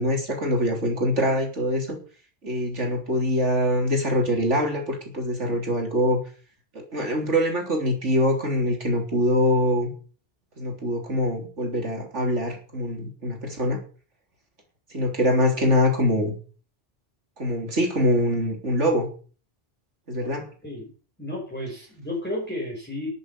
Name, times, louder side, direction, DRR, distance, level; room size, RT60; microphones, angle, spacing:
voice 1, 0.0-2.0 2.4-6.2 6.8-9.9 10.6-13.8 14.9-16.4 17.4-19.1 20.1-20.5, equal, 85° right, 3 dB, 3.8 m, -24 dB
voice 2, 21.2-23.1, left 1 dB, 10° left, -4 dB, 5.3 m, -32 dB
11.5 x 8.0 x 8.4 m, 0.40 s
omnidirectional pair, 1.2 m